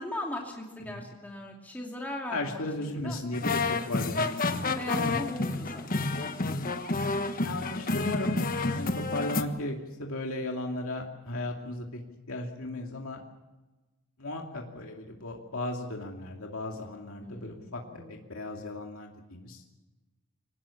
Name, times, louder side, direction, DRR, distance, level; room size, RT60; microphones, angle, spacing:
voice 1, 0.0-2.6 3.0-3.2 4.6-6.5 17.2-18.2, left 1 dB, 10° left, -1 dB, 2.6 m, -39 dB
voice 2, 2.3-5.2 7.4-8.4 8.7-12.0 12.3-13.2 14.2-19.6, left 2 dB, 70° left, 1 dB, 2.6 m, -36 dB
sound 1, 3.3-9.4, left 3 dB, 40° left, 1.4 m, -29 dB
25.0 x 19.0 x 7.2 m, 1.1 s
head